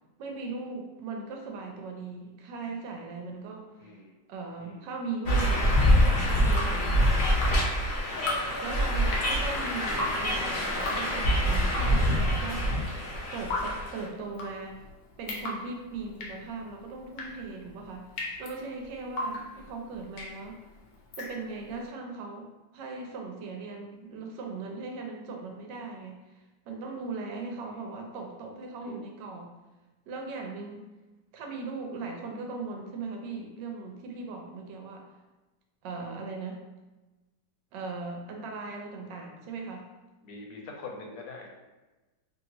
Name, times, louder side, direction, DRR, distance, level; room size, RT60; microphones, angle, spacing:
voice 1, 0.2-3.9 4.3-7.4 8.6-14.8 15.2-20.6 21.1-22.5 22.7-29.5 30.1-30.8 31.3-35.0 35.8-36.6 37.7-39.9, right 3 dB, 80° right, 2 dB, 1.2 m, -39 dB
voice 2, 3.8-4.1 4.6-4.9 9.0-9.3 19.5-19.7 23.7-23.9 27.7-27.9 28.8-29.0 40.2-41.7, left 3 dB, 85° left, 0 dB, 1.3 m, -45 dB
sound 1, 5.2-14.0, equal, 50° left, 0.6 m, -25 dB
Drip, 6.3-21.8, left 2 dB, 70° left, 1.0 m, -38 dB
2.9 x 2.7 x 2.8 m, 1.1 s
omnidirectional pair, 1.9 m